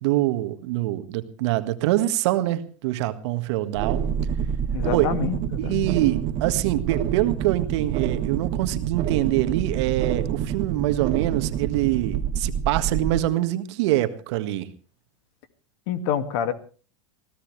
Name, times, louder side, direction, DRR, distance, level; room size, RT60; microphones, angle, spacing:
voice 1, 0.0-4.0 4.9-5.1 5.6-14.7, right 15 dB, 60° right, 10 dB, 1.8 m, -24 dB
sound 1, 3.7-13.2, right 9 dB, 40° right, 2.0 m, -27 dB
voice 2, 4.7-5.9 15.9-16.5, left 8 dB, 60° left, 11 dB, 2.2 m, -27 dB
24.5 x 17.0 x 3.3 m, 0.38 s
hypercardioid pair, 115°, 16 cm